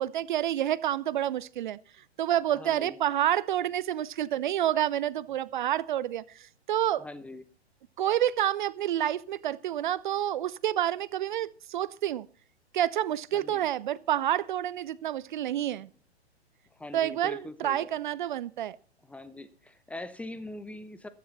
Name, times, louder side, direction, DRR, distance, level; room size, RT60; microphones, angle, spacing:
voice 1, 0.0-1.8 2.2-7.0 8.0-12.3 12.7-15.9 16.9-18.8, right 11 dB, 45° right, 0.6 m, -28 dB
voice 2, 2.5-3.0 7.0-7.4 13.3-13.7 16.7-17.9 19.0-21.1, left 2 dB, 5° left, 0.7 m, -42 dB
15.0 x 13.0 x 4.1 m
figure-of-eight pair, 115°, 33 cm